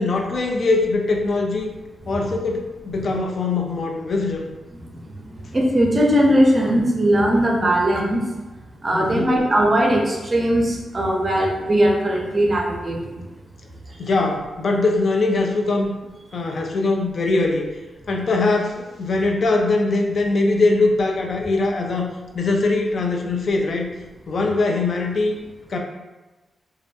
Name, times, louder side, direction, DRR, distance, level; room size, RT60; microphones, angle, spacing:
voice 1, 0.0-1.7 2.1-4.5 8.9-9.4 14.0-15.9 16.3-17.7 18.1-22.1 22.3-23.9 24.3-25.4 25.7-25.8, left 3 dB, 60° left, 2 dB, 0.3 m, -21 dB
voice 2, 4.8-8.2 8.8-13.2, equal, 35° right, -1 dB, 0.5 m, -19 dB
2.3 x 2.1 x 2.6 m, 1.1 s
cardioid pair, 75°, 0 cm